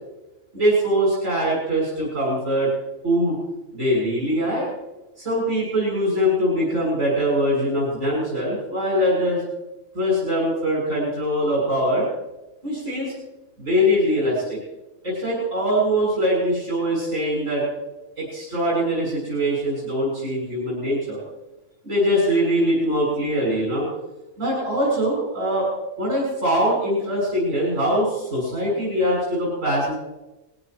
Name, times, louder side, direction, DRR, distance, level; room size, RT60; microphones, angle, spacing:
voice 1, 0.5-2.7 3.0-3.3 3.7-4.7 5.2-9.4 9.9-12.1 12.6-13.1 13.6-14.6 15.0-17.6 18.2-21.2 21.8-23.9 24.4-25.7 26.0-29.9, equal, 85° right, -6 dB, 7.4 m, -22 dB
22.0 x 16.0 x 3.2 m, 1.0 s
omnidirectional pair, 1.3 m